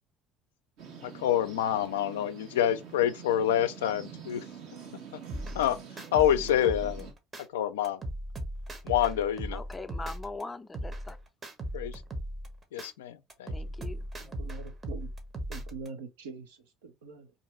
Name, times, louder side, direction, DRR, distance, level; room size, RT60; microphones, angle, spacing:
sound 1, 0.8-7.1, right 7 dB, 70° right, 1.0 m, -46 dB
voice 1, 1.0-4.4 5.5-5.8 6.1-7.1 7.5-8.0 8.8-9.6 11.7-12.0 12.7-13.5, left 11 dB, 90° left, 0.3 m, -27 dB
sound 2, 5.3-7.4 7.8-10.4 10.7-12.9 13.3-15.9, equal, 35° right, 0.8 m, -38 dB
voice 2, 9.5-11.2 13.5-14.4, left 3 dB, 15° left, 0.4 m, -41 dB
voice 3, 14.2-15.1 15.5-16.6 16.8-17.3, right 4 dB, 90° right, 0.6 m, -43 dB
2.5 x 2.3 x 2.9 m
hypercardioid pair, 75°, 0 cm